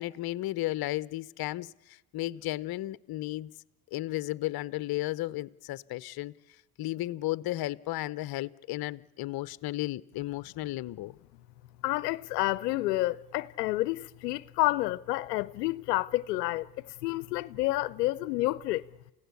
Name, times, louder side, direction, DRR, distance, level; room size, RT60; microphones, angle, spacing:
voice 1, 0.0-3.5 3.9-6.3 6.8-11.1, left 17 dB, 50° left, 0.9 m, -34 dB
voice 2, 11.8-16.7 17.0-18.8, left 18 dB, 85° left, 0.8 m, -29 dB
29.5 x 16.5 x 8.4 m
hypercardioid pair, 75°, 47 cm